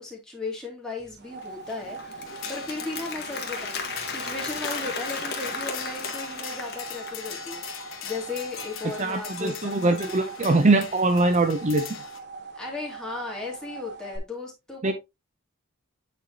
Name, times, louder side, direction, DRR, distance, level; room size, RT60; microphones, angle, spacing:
voice 1, 0.0-10.4 12.5-14.9, left 3 dB, 5° left, 2.3 m, -36 dB
sound 1, 1.0-14.2, right 4 dB, 50° right, 0.9 m, -42 dB
Applause, 1.4-7.2, left 4 dB, 50° left, 1.5 m, -35 dB
sound 2, 2.3-12.2, left 8 dB, 65° left, 1.3 m, -41 dB
voice 2, 9.0-11.8 14.8-14.9, right 2 dB, 35° right, 0.6 m, -22 dB
9.1 x 4.3 x 2.7 m
head